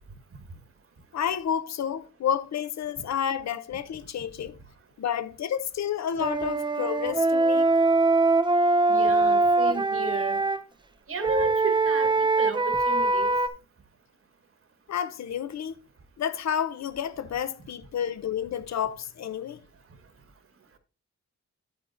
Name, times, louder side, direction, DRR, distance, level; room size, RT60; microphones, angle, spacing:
voice 1, 1.1-4.6 5.0-7.7 14.9-15.8 16.2-19.6, left 9 dB, 65° left, 0.6 m, -30 dB
Wind instrument woodwind instrument, 6.2-10.6 11.2-13.5, right 3 dB, 15° right, 0.5 m, -22 dB
voice 2, 8.9-10.4 11.1-13.3, right 3 dB, 50° right, 1.4 m, -33 dB
9.1 x 8.5 x 2.5 m
wide cardioid pair, 155°, 29 cm